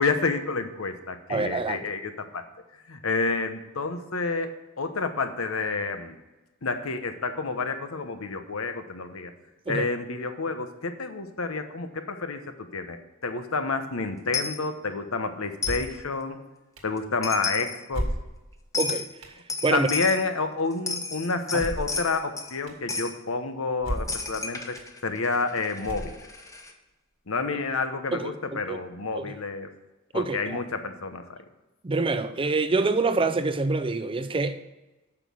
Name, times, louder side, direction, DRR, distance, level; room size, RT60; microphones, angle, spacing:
voice 1, 0.0-2.4 2.9-6.1 6.6-9.3 9.7-13.0 13.2-16.4 16.8-18.1 19.7-26.1 27.3-29.7 30.1-31.4, left 4 dB, 85° left, 1.0 m, -29 dB
voice 2, 1.3-1.8 9.7-9.9 18.8-19.1 19.6-19.9 21.5-21.6 28.1-28.3 28.7-28.8 29.1-29.3 30.1-30.6 31.8-34.6, right 3 dB, 25° right, 0.5 m, -26 dB
Coin (dropping), 14.3-14.6 15.6-15.9 17.0-17.1 17.2-17.8 18.7-19.1 19.5-20.2 20.7-22.5 22.9-23.1 24.1-26.7, left 4 dB, 15° left, 1.0 m, -32 dB
sound 1, 15.6-16.0 16.8-16.9 17.9-18.6 19.2-19.4 21.6-22.0 22.7-22.8 23.8-24.3 24.8-24.9 25.8-26.4, equal, 80° right, 1.7 m, -33 dB
8.9 x 6.2 x 6.2 m
head